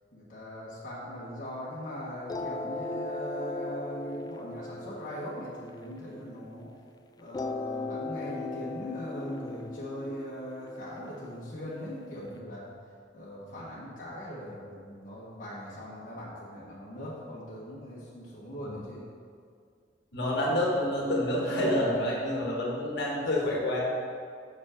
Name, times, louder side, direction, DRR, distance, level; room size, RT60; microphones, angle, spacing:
voice 1, 0.1-6.7 7.2-12.7 13.1-19.0, equal, 45° left, -8 dB, 1.2 m, -40 dB
sound 1, 2.3-6.7 7.3-12.3, left 2 dB, 20° left, 0.3 m, -38 dB
voice 2, 20.1-23.8, left 1 dB, 65° left, -3 dB, 1.4 m, -28 dB
6.1 x 5.1 x 5.0 m, 2.2 s
head